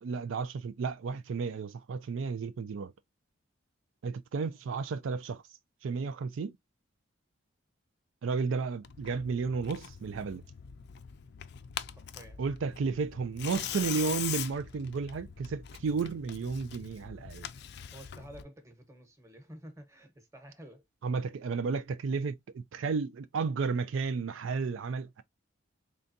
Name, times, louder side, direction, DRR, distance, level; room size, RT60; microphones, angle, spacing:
voice 1, 0.0-2.9 4.0-5.4 5.8-6.6 8.2-10.4 12.4-17.5 21.0-25.2, right 5 dB, 70° right, 0.4 m, -33 dB
Tearing, 8.8-18.4, left 10 dB, 55° left, 0.4 m, -42 dB
voice 2, 11.9-12.4 17.9-20.8, right 1 dB, 15° right, 1.1 m, -51 dB
3.9 x 3.3 x 2.6 m
head